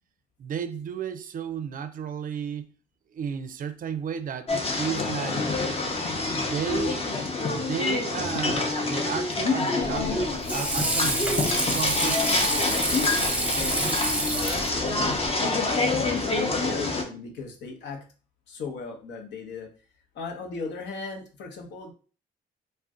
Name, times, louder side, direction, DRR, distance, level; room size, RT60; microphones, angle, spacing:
voice 1, 0.4-2.7 3.1-5.4 6.3-12.4, right 7 dB, 50° right, 0.4 m, -33 dB
sound 1, 4.5-17.0, left 3 dB, 35° left, 0.7 m, -27 dB
Water / Sink (filling or washing), 9.8-15.3, right 1 dB, 5° right, 0.7 m, -28 dB
voice 2, 16.2-18.0 18.5-19.7 20.1-21.9, left 4 dB, 70° left, 0.8 m, -37 dB
2.4 x 2.1 x 3.5 m
supercardioid pair, 65°, 19 cm